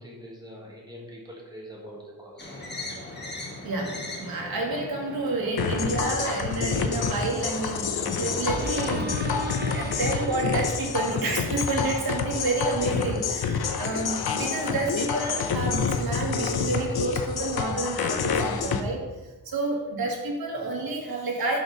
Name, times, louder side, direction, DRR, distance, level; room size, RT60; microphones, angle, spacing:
voice 1, 0.0-2.5, equal, 10° right, -3 dB, 1.7 m, -43 dB
sound 1, 2.4-8.7, left 2 dB, 25° left, 1.5 m, -40 dB
voice 2, 3.6-19.0 19.5-21.6, right 2 dB, 70° right, 0 dB, 1.9 m, -29 dB
sound 2, 5.6-18.8, left 5 dB, 75° left, 0.8 m, -28 dB
sound 3, 8.5-11.4 11.9-12.0, right 2 dB, 25° right, 0.7 m, -36 dB
11.5 x 5.1 x 4.0 m, 1.2 s
wide cardioid pair, 175°, 38 cm